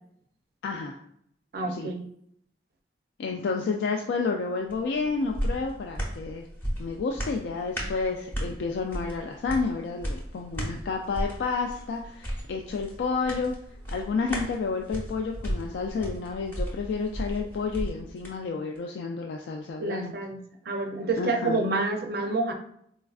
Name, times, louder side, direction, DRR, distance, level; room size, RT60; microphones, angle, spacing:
voice 1, 0.6-1.0 1.6-1.9 3.2-6.4 6.8-13.5 13.9-20.1 21.2-21.6, left 4 dB, 85° left, 2 dB, 0.3 m, -30 dB
voice 2, 1.5-2.0 19.8-20.4 20.7-22.5, right 3 dB, 60° right, 4 dB, 0.4 m, -28 dB
sound 1, 4.7-18.4 18.8-18.9, equal, 10° left, 0.7 m, -35 dB
4.1 x 2.3 x 2.3 m, 0.69 s
head